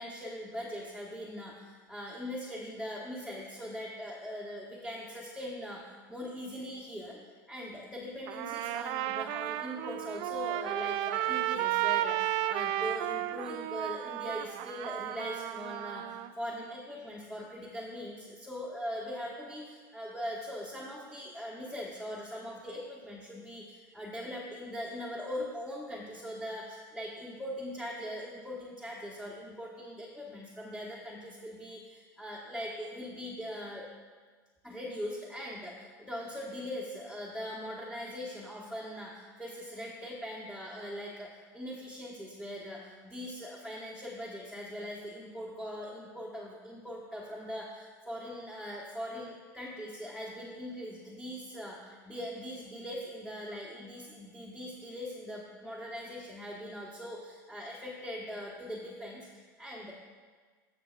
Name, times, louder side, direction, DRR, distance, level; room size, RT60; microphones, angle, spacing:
voice 1, 0.0-7.2 7.5-33.9 34.6-59.9, equal, 5° left, -5 dB, 1.2 m, -41 dB
Trumpet, 8.3-16.3, right 14 dB, 55° right, 0.4 m, -33 dB
15.0 x 6.0 x 2.4 m, 1.5 s
hypercardioid pair, 100°, 10 cm